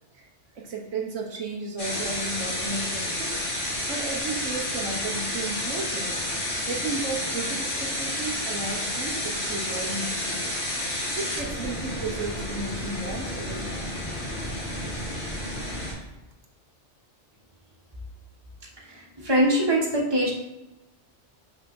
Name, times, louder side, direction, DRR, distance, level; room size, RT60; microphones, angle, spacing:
voice 1, 0.5-3.4 3.9-6.2 6.7-10.5 11.2-13.9, right 3 dB, 85° right, 0 dB, 1.4 m, -34 dB
sound 1, 1.8-15.9, left 1 dB, 45° left, 2.3 m, -30 dB
voice 2, 18.9-20.3, right 1 dB, 20° right, -4 dB, 1.5 m, -23 dB
5.9 x 3.7 x 5.9 m, 0.97 s
omnidirectional pair, 1.2 m